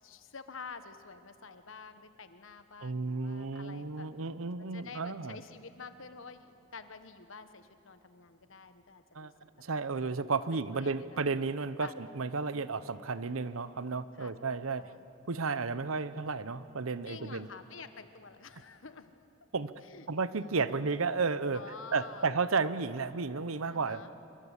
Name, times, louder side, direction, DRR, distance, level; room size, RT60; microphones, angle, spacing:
voice 1, 0.0-4.1 4.6-9.3 10.5-11.3 11.8-11.9 14.2-14.4 14.8-15.0 17.1-19.1 19.8-20.1 20.3-20.5 21.5-22.4 23.7-24.1, left 5 dB, 70° left, 10 dB, 1.3 m, -49 dB
voice 2, 2.8-5.4 9.1-9.3 9.6-14.9 15.3-17.5 19.5-19.7 20.1-21.6 21.9-24.1, right 4 dB, 85° right, 15 dB, 0.9 m, -33 dB
26.0 x 24.0 x 8.3 m, 3.0 s
head